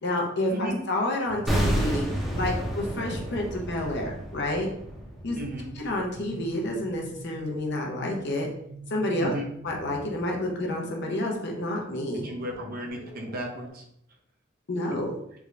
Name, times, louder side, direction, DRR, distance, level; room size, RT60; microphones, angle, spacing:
voice 1, 0.0-2.1 2.4-4.7 5.2-5.4 5.7-8.5 8.9-9.3 9.6-12.3 14.7-15.1, left 1 dB, 60° left, 0 dB, 0.8 m, -29 dB
sound 1, 1.3-13.7, right 2 dB, 85° right, 0.8 m, -45 dB
sound 2, 1.5-6.5 6.7-6.9, equal, ahead, 0.7 m, -30 dB
voice 2, 5.3-5.7 9.2-9.5 12.2-13.8, equal, 50° right, 1 dB, 0.7 m, -34 dB
3.5 x 2.5 x 3.2 m, 0.72 s
head